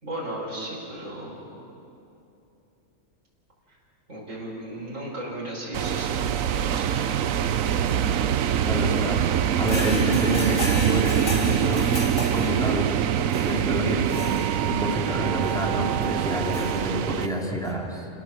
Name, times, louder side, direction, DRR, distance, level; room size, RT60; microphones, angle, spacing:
voice 1, 0.0-1.6 3.7-3.8 4.1-7.5, right 1 dB, 70° right, -5 dB, 5.2 m, -36 dB
sound 1, 5.7-17.3, right 9 dB, 90° right, 1.1 m, -24 dB
voice 2, 8.7-9.2 9.6-11.8 12.3-12.9 13.4-18.1, equal, 5° left, -2 dB, 2.9 m, -28 dB
sound 2, 9.6-15.0 15.4-15.6 16.3-17.4 17.6-17.7, left 2 dB, 65° left, 3.2 m, -35 dB
28.5 x 18.0 x 7.4 m, 2.8 s
omnidirectional pair, 1.4 m